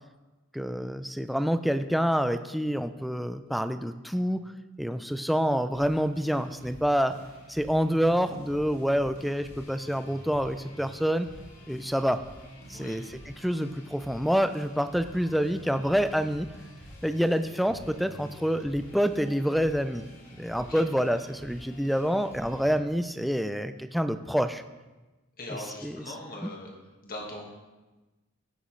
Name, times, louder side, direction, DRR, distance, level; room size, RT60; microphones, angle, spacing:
voice 1, 0.5-4.4 4.8-7.1 7.5-11.3 11.7-12.2 12.7-13.0 13.4-16.5 17.0-20.0 20.4-24.6 25.8-25.9 26.4-26.5, equal, ahead, 9 dB, 0.3 m, -27 dB
sound 1, 5.7-22.8, equal, 70° left, 2.5 m, -49 dB
voice 2, 20.5-20.9 25.4-26.8 27.0-27.5, left 1 dB, 45° left, -1 dB, 1.7 m, -40 dB
16.0 x 6.3 x 3.2 m, 1.2 s
head